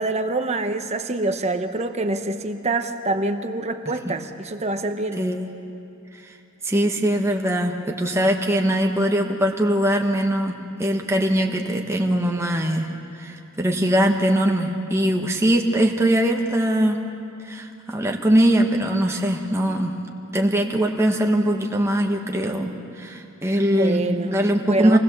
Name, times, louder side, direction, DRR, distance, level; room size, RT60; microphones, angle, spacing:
voice 1, 0.0-5.2 23.6-25.0, right 2 dB, 30° right, 7 dB, 1.1 m, -26 dB
voice 2, 5.2-5.5 6.6-12.9 13.2-17.0 17.4-19.9 20.3-25.0, right 1 dB, 15° right, 1 dB, 1.3 m, -21 dB
26.0 x 19.5 x 7.3 m, 2.8 s
head